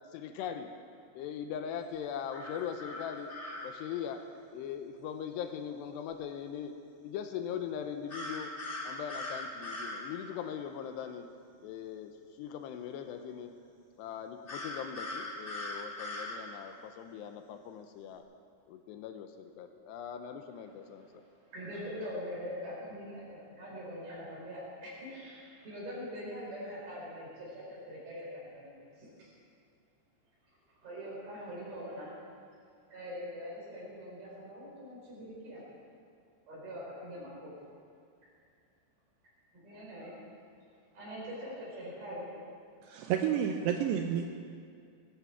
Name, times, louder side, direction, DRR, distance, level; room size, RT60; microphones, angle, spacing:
voice 1, 0.1-0.7 1.1-3.3 3.6-4.2 4.5-6.8 7.0-8.5 8.8-11.3 11.6-12.1 12.4-13.5 14.0-18.2 18.7-21.2, left 8 dB, 80° left, 7 dB, 2.7 m, -40 dB
sound 1, 2.3-3.7 8.1-10.0 14.5-16.4, left 2 dB, 55° left, 0.7 m, -40 dB
voice 2, 20.9-29.3 30.8-32.1 32.9-35.6 36.5-37.6 39.5-40.1 40.9-42.3, equal, 55° right, -5 dB, 6.7 m, -43 dB
voice 3, 42.8-44.3, right 9 dB, 80° right, 4 dB, 2.7 m, -30 dB
19.0 x 15.0 x 4.7 m, 2.3 s
omnidirectional pair, 5.1 m